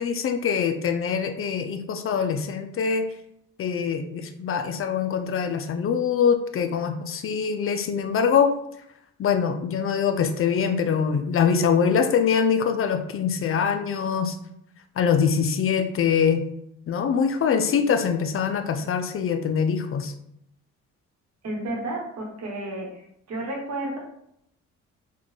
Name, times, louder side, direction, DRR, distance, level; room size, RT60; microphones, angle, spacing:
voice 1, 0.0-3.1 3.6-8.5 9.2-14.4 15.0-16.4 16.9-20.1, left 7 dB, 45° left, 7 dB, 0.4 m, -23 dB
voice 2, 21.4-24.0, right 1 dB, 60° right, 0 dB, 1.2 m, -32 dB
3.6 x 2.3 x 3.5 m, 0.75 s
cardioid pair, 90°, 30 cm